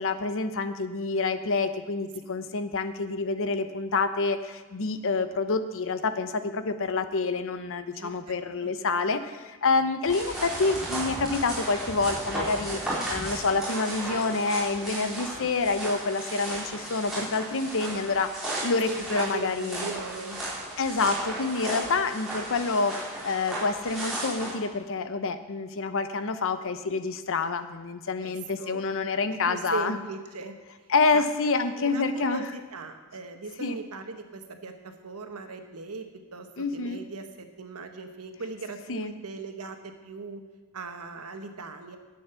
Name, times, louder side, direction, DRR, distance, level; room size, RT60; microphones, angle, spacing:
voice 1, 0.0-12.8 13.1-18.3 18.6-19.9 20.8-30.0 30.9-32.4 33.6-33.8 36.6-37.0 38.9-39.1, left 3 dB, 60° left, 10 dB, 0.8 m, -27 dB
voice 2, 7.9-8.7 18.8-20.4 28.2-28.9 29.4-30.6 31.1-31.2 31.8-40.4 40.7-42.0, right 3 dB, 80° right, 6 dB, 1.3 m, -39 dB
sound 1, 10.0-24.5, right 1 dB, ahead, 4.3 m, -35 dB
11.0 x 8.6 x 6.9 m, 1.3 s
head